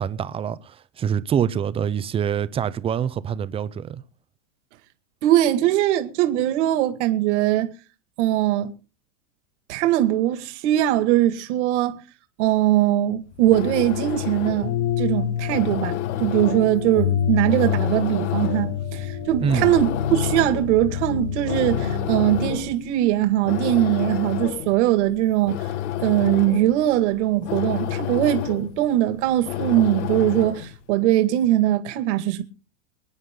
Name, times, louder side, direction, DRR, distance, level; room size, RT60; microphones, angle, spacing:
voice 1, 0.0-4.0 19.4-19.7, right 8 dB, 15° right, 0.6 m, -25 dB
voice 2, 5.2-7.7 8.2-8.7 9.7-12.0 12.4-14.7 15.0-25.6 26.0-32.4, right 13 dB, 65° right, 2.2 m, -21 dB
sound 1, 13.2-30.8, left 12 dB, 65° left, 1.5 m, -31 dB
sound 2, 14.6-22.6, left 7 dB, 85° left, 5.0 m, -27 dB
25.0 x 9.8 x 3.8 m
supercardioid pair, 150°, 38 cm